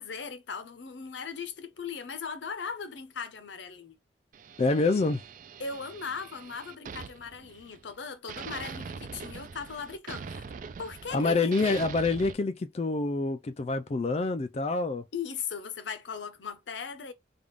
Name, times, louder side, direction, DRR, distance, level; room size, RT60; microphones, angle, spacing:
voice 1, 0.0-4.0 5.6-10.5 10.8-11.9 15.1-17.1, left 5 dB, 85° left, 0.7 m, -38 dB
sound 1, 4.3-8.0 8.3-12.3, right 6 dB, 45° right, 0.3 m, -43 dB
voice 2, 4.6-5.2 11.1-15.0, left 3 dB, 35° left, 0.4 m, -27 dB
3.5 x 2.4 x 3.4 m
head